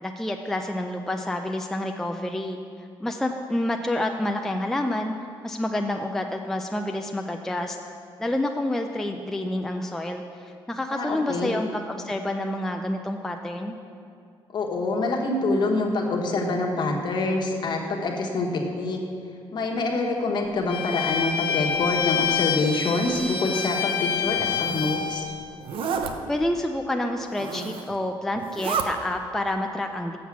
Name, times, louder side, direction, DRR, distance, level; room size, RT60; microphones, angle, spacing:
voice 1, 0.0-2.6 3.0-5.1 5.4-7.8 8.2-13.8 26.3-30.2, left 1 dB, 5° left, 4 dB, 0.4 m, -28 dB
voice 2, 10.9-11.6 14.5-19.0 19.5-25.2, left 2 dB, 50° left, 1 dB, 1.2 m, -26 dB
Bowed string instrument, 20.7-25.3, left 7 dB, 70° left, 0.6 m, -27 dB
Zipper (clothing), 24.2-25.0 25.6-26.1 27.2-27.9 28.4-28.9, right 6 dB, 65° right, 0.7 m, -31 dB
7.2 x 7.2 x 6.0 m, 2.4 s
cardioid pair, 130°, 9 cm